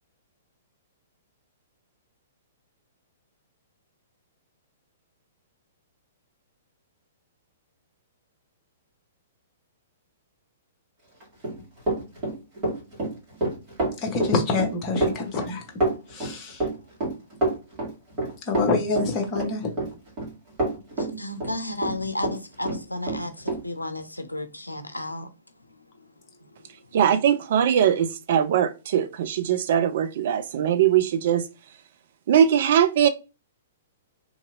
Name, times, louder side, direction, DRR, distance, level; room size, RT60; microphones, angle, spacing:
Run, 11.2-22.4 22.6-23.6, right 2 dB, 25° right, 1.8 m, -27 dB
voice 1, 14.0-15.6 16.1-16.6 18.5-19.7, left 3 dB, 25° left, 0.8 m, -26 dB
voice 2, 20.9-25.3, left 2 dB, 85° left, 0.4 m, -33 dB
voice 3, 26.9-31.5 32.3-33.1, right 9 dB, 50° right, 0.3 m, -21 dB
2.8 x 2.7 x 2.4 m
figure-of-eight pair, 110°, 0 cm